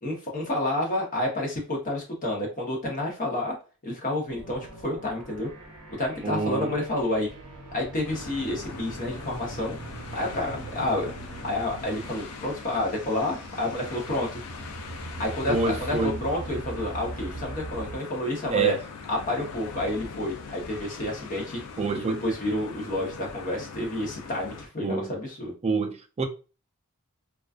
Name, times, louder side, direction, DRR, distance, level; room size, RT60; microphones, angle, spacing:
voice 1, 0.0-3.5 3.8-5.5 6.0-7.3 7.7-9.8 10.1-11.1 11.4-14.4 15.2-18.7 19.1-21.6 21.9-25.5, left 1 dB, 35° left, 0.8 m, -29 dB
sound 1, 4.3-18.0, right 2 dB, 85° right, 0.7 m, -41 dB
voice 2, 6.2-6.7 15.5-16.2 18.5-18.8 21.8-22.2 24.8-25.1 25.6-26.3, right 4 dB, 30° right, 0.3 m, -26 dB
sound 2, 8.1-24.7, left 5 dB, 70° left, 0.4 m, -42 dB
2.3 x 2.3 x 2.3 m
head